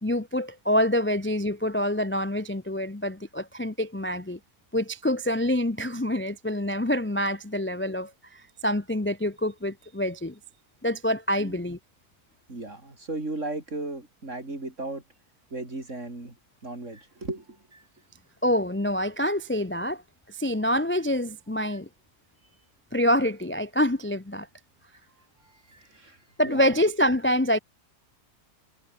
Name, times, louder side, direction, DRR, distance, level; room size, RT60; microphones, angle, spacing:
voice 1, 0.0-4.4 4.7-10.4 10.8-11.8 18.4-20.0 20.3-21.9 22.9-24.5 26.4-27.6, left 1 dB, 10° left, 0.8 m, -26 dB
voice 2, 12.5-15.0 15.5-16.4 16.6-17.9 25.4-26.7, right 2 dB, 50° right, 5.2 m, -36 dB
omnidirectional pair, 1.6 m